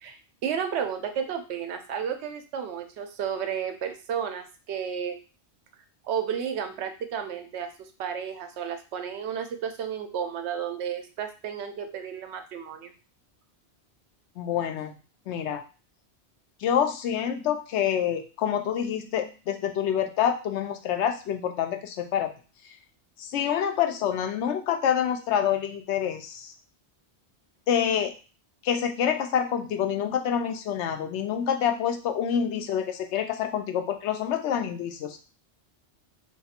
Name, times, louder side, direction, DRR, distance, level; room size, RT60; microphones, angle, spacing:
voice 1, 0.0-5.2 6.0-12.9, right 8 dB, 80° right, 7 dB, 0.9 m, -32 dB
voice 2, 14.4-14.9 15.3-15.6 16.6-22.3 23.2-26.5 27.7-28.1 28.6-35.2, left 9 dB, 90° left, 6 dB, 0.9 m, -27 dB
2.5 x 2.4 x 4.1 m, 0.34 s
omnidirectional pair, 1.1 m